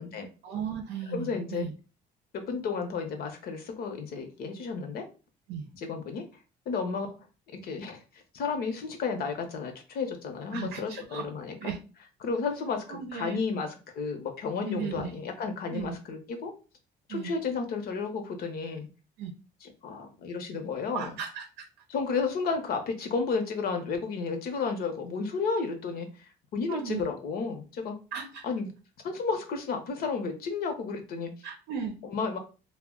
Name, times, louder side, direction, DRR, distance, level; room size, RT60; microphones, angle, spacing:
voice 1, 0.4-1.7 5.5-5.6 10.5-11.3 11.6-11.8 12.9-13.5 14.6-15.1 15.7-15.9 17.1-17.3 19.2-19.3 20.9-21.7 26.7-27.1 28.1-28.4 31.4-32.0, right 7 dB, 80° right, 4 dB, 0.6 m, -36 dB
voice 2, 1.1-1.7 2.3-5.0 5.7-6.2 6.7-7.2 7.6-8.0 8.3-11.7 12.2-16.5 17.1-18.9 19.6-21.1 21.9-28.0 28.4-28.7 29.0-31.3 32.0-32.4, left 4 dB, 65° left, 5 dB, 0.7 m, -32 dB
2.2 x 2.1 x 3.6 m, 0.33 s
cardioid pair, 110°, 17 cm